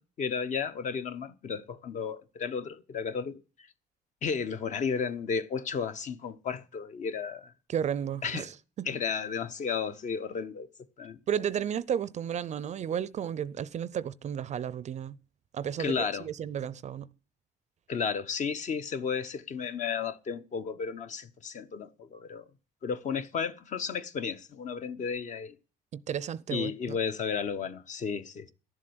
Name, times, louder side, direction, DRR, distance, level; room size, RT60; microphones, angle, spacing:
voice 1, 0.0-3.4 4.2-7.5 8.2-8.5 8.9-10.7 11.0-11.2 15.8-16.3 17.9-22.5 22.8-25.6 26.5-28.5, left 6 dB, 45° left, 1.0 m, -33 dB
voice 2, 7.7-8.5 8.8-8.9 11.3-15.1 15.5-17.1 25.9-27.0, right 9 dB, 45° right, 0.5 m, -33 dB
12.0 x 7.5 x 7.9 m
cardioid pair, 110°, 17 cm